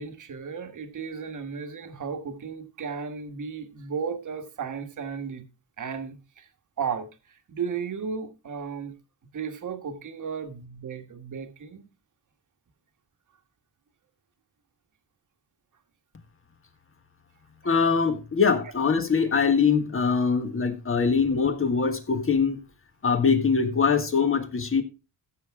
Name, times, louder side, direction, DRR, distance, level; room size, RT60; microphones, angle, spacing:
voice 1, 0.0-5.4 5.8-6.5 6.8-8.9 9.3-11.9 21.0-21.1, right 6 dB, 45° right, 1.5 m, -34 dB
voice 2, 17.6-22.6 23.0-24.8, left 5 dB, 30° left, 1.6 m, -23 dB
15.5 x 6.8 x 3.5 m
wide cardioid pair, 135°, 41 cm